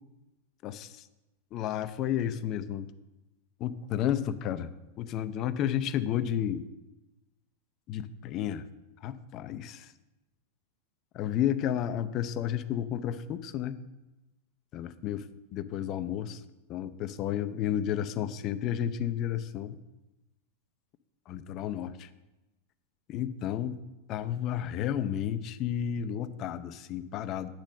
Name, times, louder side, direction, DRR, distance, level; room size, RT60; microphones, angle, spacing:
voice 1, 0.6-1.1 1.5-2.9 3.6-6.6 7.9-8.6 9.0-9.9 11.1-13.8 14.7-15.3 15.5-16.4 16.7-19.8 21.3-22.1 23.1-23.8 24.1-27.5, left 10 dB, 35° left, 12 dB, 0.5 m, -32 dB
9.0 x 4.1 x 6.3 m, 1.0 s
figure-of-eight pair, 90°, 0 cm